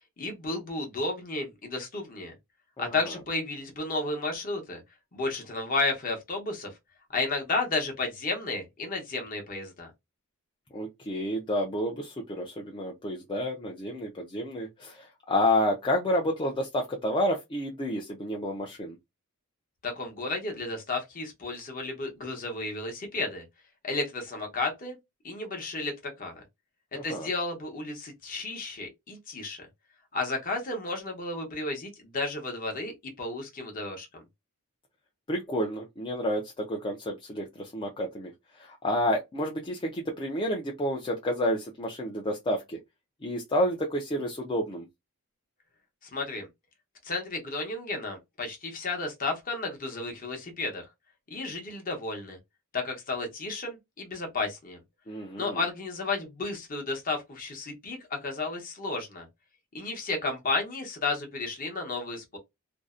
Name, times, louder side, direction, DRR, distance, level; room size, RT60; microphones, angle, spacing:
voice 1, 0.2-2.3 2.8-4.8 5.1-6.7 7.1-9.9 19.8-23.4 23.8-25.0 25.2-26.4 27.0-29.7 30.1-34.2 46.0-46.5 47.0-50.9 51.3-52.4 52.7-54.8 55.4-59.3 59.7-62.4, left 3 dB, 40° left, 0.8 m, -32 dB
voice 2, 10.7-19.0 26.9-27.3 35.3-38.3 38.6-42.8 43.2-44.9 55.1-55.6, left 1 dB, 20° left, 0.4 m, -30 dB
2.6 x 2.0 x 2.3 m
head